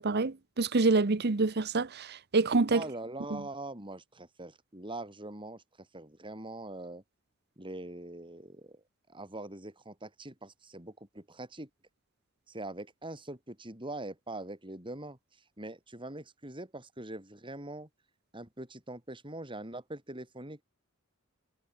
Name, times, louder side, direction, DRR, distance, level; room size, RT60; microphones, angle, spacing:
voice 1, 0.0-2.8 3.3-3.4, right 3 dB, 50° right, 0.9 m, -27 dB
voice 2, 2.7-5.6 5.9-7.0 7.6-8.8 9.1-11.7 12.5-15.2 15.6-17.9 18.3-20.6, right 2 dB, 25° right, 7.1 m, -43 dB
head